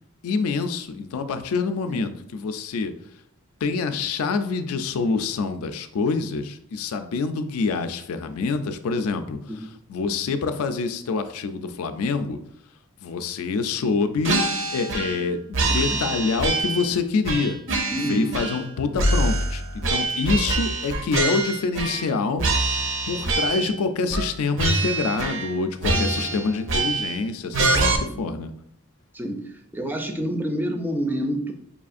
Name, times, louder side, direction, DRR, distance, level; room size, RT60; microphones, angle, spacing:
voice 1, 0.2-2.9 3.6-9.4 9.9-12.4 13.0-14.4 14.7-17.6 18.1-22.4 23.1-28.5, left 4 dB, 75° left, 9 dB, 0.4 m, -26 dB
sound 1, 14.2-15.3 15.5-16.9 17.2-18.7 19.0-22.1 22.4-23.8 24.1-24.3 24.6-25.5 25.8-27.2 27.5-28.0, right 2 dB, 60° right, 0.5 m, -25 dB
voice 2, 15.7-16.2 17.9-18.3 25.9-26.3 28.1-28.2 29.1-31.5, equal, 10° right, 5 dB, 0.3 m, -29 dB
5.4 x 2.4 x 2.5 m, 0.72 s
head